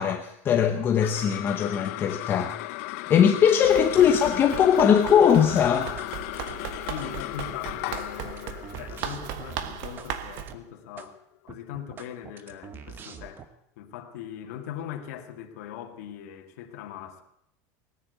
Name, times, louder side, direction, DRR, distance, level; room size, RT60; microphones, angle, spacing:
voice 1, 0.0-2.5 3.1-5.9, left 8 dB, 25° left, 0.9 m, -20 dB
sound 1, 0.8-11.4, left 20 dB, 65° left, 0.6 m, -36 dB
Run, 3.6-10.5, right 9 dB, 50° right, 1.3 m, -38 dB
sound 2, 5.5-6.1 6.4-7.1 7.5-10.1 10.4-10.6 11.0-11.1 11.5-13.5, right 6 dB, 25° right, 1.1 m, -44 dB
voice 2, 6.9-17.2, left 10 dB, 85° left, 2.0 m, -40 dB
18.5 x 9.8 x 8.0 m
cardioid pair, 165°, 8 cm